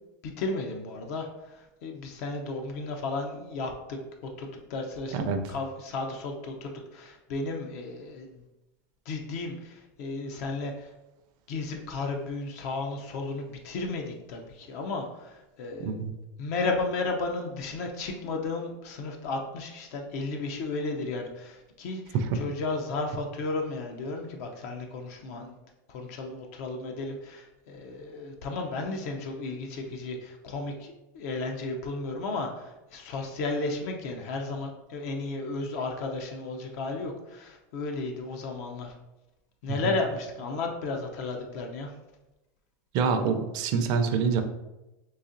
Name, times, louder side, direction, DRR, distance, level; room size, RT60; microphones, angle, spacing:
voice 1, 0.2-4.0 4.4-8.4 9.1-10.9 11.5-16.0 16.4-25.5 25.9-38.9 39.6-41.9, left 3 dB, 65° left, 3 dB, 0.5 m, -34 dB
voice 2, 5.1-5.5 15.8-16.1 22.1-22.4 42.9-44.4, right 5 dB, 50° right, 7 dB, 0.4 m, -26 dB
3.9 x 2.8 x 2.6 m, 0.98 s
supercardioid pair, 125°, 9 cm